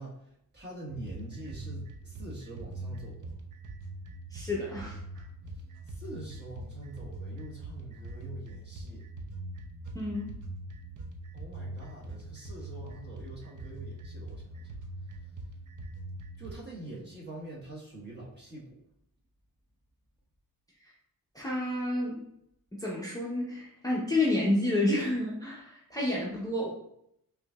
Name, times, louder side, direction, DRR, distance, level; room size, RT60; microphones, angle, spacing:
voice 1, 0.0-3.3 5.8-9.0 11.3-14.7 16.4-18.8, right 2 dB, 30° right, -5 dB, 1.3 m, -45 dB
sound 1, 0.9-16.5, right 1 dB, 55° right, 0.6 m, -42 dB
voice 2, 4.3-5.0 9.9-10.3 20.8-20.9 21.3-22.2 22.8-26.7, left 1 dB, 10° left, -5 dB, 0.6 m, -30 dB
4.9 x 2.8 x 2.3 m, 0.74 s
wide cardioid pair, 110°, 37 cm